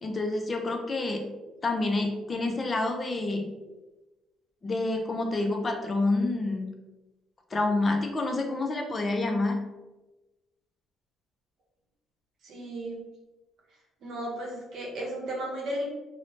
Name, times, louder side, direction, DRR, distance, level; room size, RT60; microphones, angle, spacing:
voice 1, 0.0-1.3 1.6-3.5 4.6-6.7 7.5-9.6, left 2 dB, 25° left, 3 dB, 0.3 m, -28 dB
voice 2, 12.4-13.0 14.0-15.9, right 1 dB, 55° right, -2 dB, 0.8 m, -34 dB
2.7 x 2.0 x 3.0 m, 1.1 s
cardioid pair, 130°, 0 cm